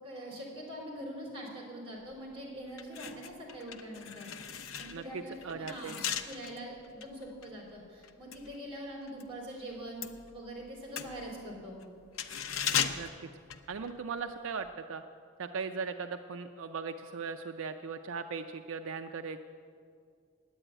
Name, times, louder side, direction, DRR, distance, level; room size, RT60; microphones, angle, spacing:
voice 1, 0.0-4.3 4.8-10.0 10.3-11.8, equal, 30° right, -3 dB, 4.1 m, -43 dB
sound 1, 2.1-2.3 2.7-9.3 9.6-14.2 14.5-14.7, left 8 dB, 75° left, 0.7 m, -38 dB
voice 2, 4.9-6.0 13.0-13.1 13.7-15.0 15.4-19.4, right 5 dB, 75° right, 7 dB, 0.5 m, -38 dB
10.0 x 9.3 x 8.9 m, 2.2 s
head